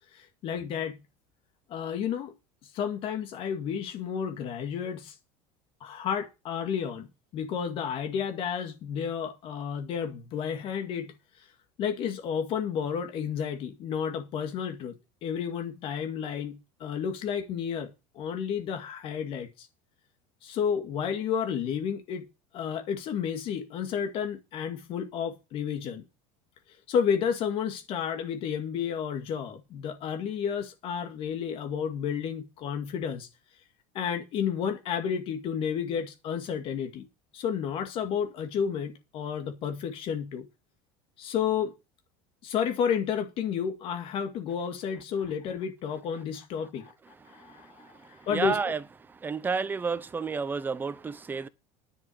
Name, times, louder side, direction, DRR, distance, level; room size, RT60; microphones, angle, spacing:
voice 1, 0.1-1.0 1.7-2.3 2.6-5.2 5.8-7.1 7.3-11.5 11.8-19.7 20.4-22.3 22.5-26.0 26.9-33.3 33.9-37.1 37.3-40.5 41.2-41.7 42.4-46.9 47.3-48.7, left 7 dB, 45° left, 2.1 m, -31 dB
voice 2, 48.3-48.8 49.2-51.5, right 5 dB, 15° right, 0.8 m, -30 dB
10.5 x 6.0 x 8.6 m
supercardioid pair, 145°, 13 cm